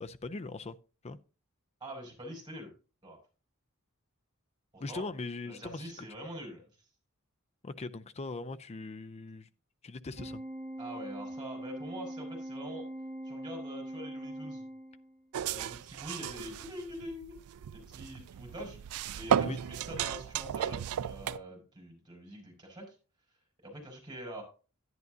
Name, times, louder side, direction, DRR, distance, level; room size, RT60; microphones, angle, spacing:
voice 1, 0.0-0.8 1.0-1.2 4.8-6.1 7.6-9.5 9.8-10.4 19.4-19.6, left 3 dB, 30° left, 0.5 m, -40 dB
voice 2, 1.8-2.7 3.0-3.2 4.7-5.1 5.5-6.6 10.8-12.9 13.2-14.7 15.5-17.4 17.7-18.8 19.1-22.9 23.6-24.4, equal, 20° right, 5.4 m, -44 dB
Organ, 10.2-15.2, right 1 dB, 50° right, 2.1 m, -42 dB
sound 1, 15.3-21.4, right 9 dB, 80° right, 0.4 m, -34 dB
11.0 x 10.5 x 2.7 m
head